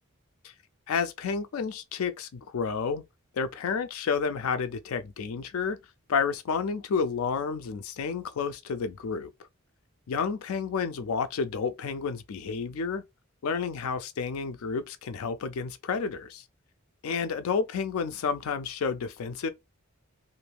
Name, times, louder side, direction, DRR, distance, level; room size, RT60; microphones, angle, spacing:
voice 1, 0.9-3.0 3.3-5.8 6.1-9.3 10.1-13.0 13.4-16.4 17.0-19.5, left 5 dB, 75° left, 0.4 m, -30 dB
2.6 x 2.4 x 3.3 m
head